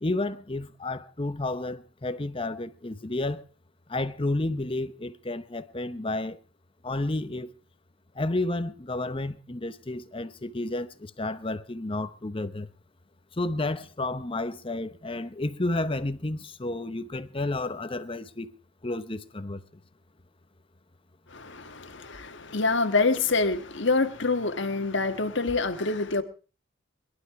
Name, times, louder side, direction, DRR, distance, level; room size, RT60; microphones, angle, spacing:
voice 1, 0.0-3.4 3.9-6.4 6.8-7.5 8.1-12.7 13.4-18.5 18.8-19.6, left 2 dB, 25° left, 0.9 m, -31 dB
voice 2, 21.3-26.2, left 3 dB, 60° left, 1.6 m, -26 dB
22.5 x 12.0 x 4.8 m
head